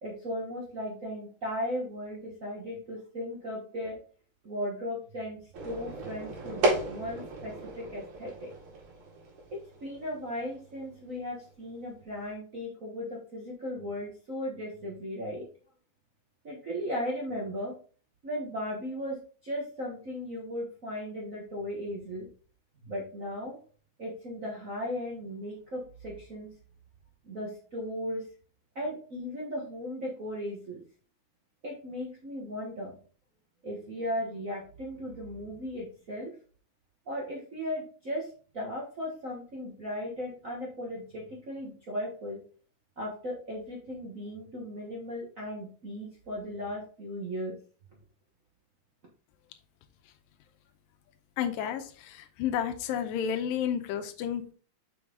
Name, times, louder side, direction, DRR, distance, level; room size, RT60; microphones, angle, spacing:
voice 1, 0.0-4.0 4.4-8.5 9.5-15.4 16.4-17.7 18.2-19.2 19.4-22.2 22.8-23.6 24.0-26.5 27.2-28.2 28.7-30.8 31.6-33.0 33.6-36.3 37.1-38.3 38.5-42.4 43.0-47.6, equal, 85° right, -3 dB, 0.7 m, -36 dB
sound 1, 5.5-12.2, right 2 dB, 60° right, 3.3 m, -35 dB
voice 2, 51.4-54.5, left 9 dB, 85° left, 7 dB, 2.5 m, -31 dB
6.2 x 5.7 x 3.8 m, 0.40 s
omnidirectional pair, 4.0 m